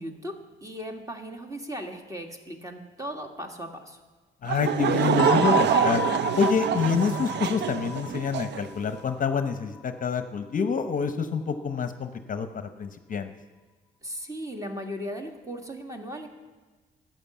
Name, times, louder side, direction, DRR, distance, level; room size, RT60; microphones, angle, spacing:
voice 1, 0.0-4.0 14.0-16.3, equal, 15° right, 4 dB, 1.9 m, -37 dB
voice 2, 4.4-6.0 6.4-12.5 12.8-13.3, left 6 dB, 40° left, 8 dB, 0.8 m, -27 dB
Laughter / Crowd, 4.5-8.7, right 9 dB, 60° right, 0.6 m, -25 dB
sound 1, 5.2-9.8, left 6 dB, 15° left, 0.9 m, -33 dB
13.5 x 9.1 x 7.2 m, 1.3 s
cardioid pair, 90°, 20 cm